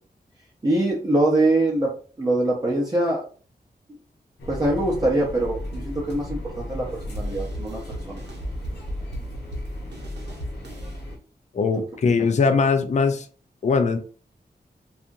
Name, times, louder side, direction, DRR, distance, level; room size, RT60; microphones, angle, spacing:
voice 1, 0.6-1.9 2.2-3.2 4.5-7.8 8.1-8.2, right 1 dB, 25° right, -4 dB, 0.7 m, -23 dB
London Overground - Canada Water to Surrey Quays, 4.4-11.2, left 1 dB, 85° left, 0.8 m, -35 dB
sound 1, 7.1-11.0, right 1 dB, 90° right, 0.7 m, -37 dB
voice 2, 11.5-13.3 13.6-14.0, left 4 dB, 45° left, 7 dB, 0.4 m, -21 dB
2.7 x 2.4 x 2.5 m, 0.40 s
wide cardioid pair, 115°, 17 cm